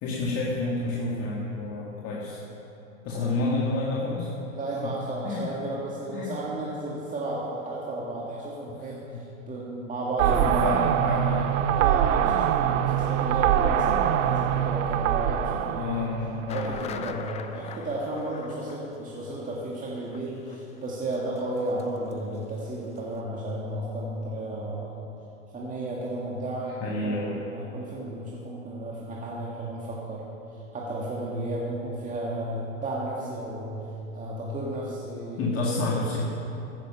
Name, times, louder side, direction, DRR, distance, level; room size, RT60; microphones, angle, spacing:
voice 1, 0.0-2.4 3.0-4.3 5.2-5.5 6.1-6.3 9.1-9.2 10.3-11.5 15.8-17.2 26.8-27.4 35.4-36.2, left 3 dB, 35° left, -4 dB, 2.0 m, -29 dB
voice 2, 4.5-10.7 11.7-15.9 16.4-24.9 25.5-26.8 27.0-33.9 34.1-35.8, right 1 dB, 20° right, -5 dB, 2.0 m, -33 dB
sound 1, 10.2-16.9, right 10 dB, 65° right, 0.8 m, -24 dB
sound 2, 16.5-22.1 22.4-22.5 22.9-23.0, left 7 dB, 15° left, 0.5 m, -43 dB
15.0 x 10.5 x 5.7 m, 3.0 s
hypercardioid pair, 120°, 40 cm